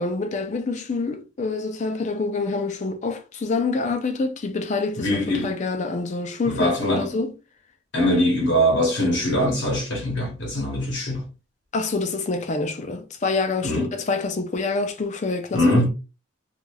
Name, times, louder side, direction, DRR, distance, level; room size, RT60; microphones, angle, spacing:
voice 1, 0.0-7.3 11.7-15.6, left 3 dB, 35° left, 0.4 m, -26 dB
voice 2, 5.0-5.5 6.5-7.2 7.9-11.3 13.6-13.9 15.5-15.9, equal, 65° left, 0.8 m, -22 dB
3.3 x 2.3 x 2.2 m
head